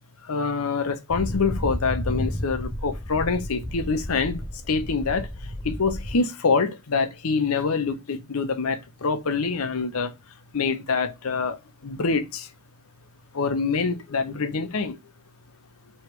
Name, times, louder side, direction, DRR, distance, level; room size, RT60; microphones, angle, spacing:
voice 1, 0.3-4.4 4.7-5.3 5.6-10.1 10.5-12.5 13.3-15.0, left 4 dB, 80° left, 0.8 m, -25 dB
sound 1, 1.1-6.2, equal, 20° left, 0.7 m, -32 dB
3.3 x 3.1 x 4.5 m
head